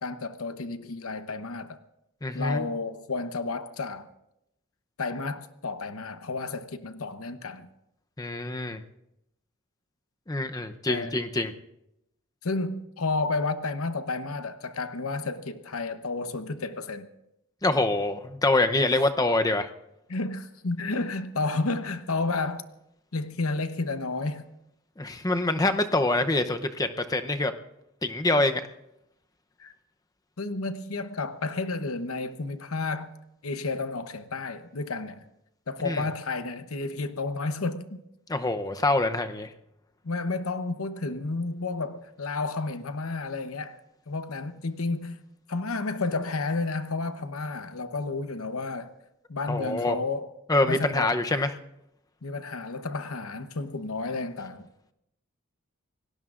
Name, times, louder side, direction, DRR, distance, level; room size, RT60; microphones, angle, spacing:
voice 1, 0.0-1.8 2.3-4.1 5.0-7.7 10.9-11.2 12.4-17.1 20.1-22.6 23.1-24.5 29.6-29.7 30.4-33.1 33.4-35.2 35.7-37.9 40.0-43.8 44.1-45.2 45.5-48.9 49.3-50.3 50.6-51.2 52.2-54.7, left 3 dB, 85° left, 0.9 m, -31 dB
voice 2, 2.2-2.7 8.2-8.8 10.3-11.5 17.6-19.7 25.0-27.5 28.0-28.6 35.8-36.0 38.3-39.5 49.5-50.0 50.5-51.5, left 2 dB, 15° left, 0.7 m, -25 dB
27.0 x 18.5 x 2.5 m
head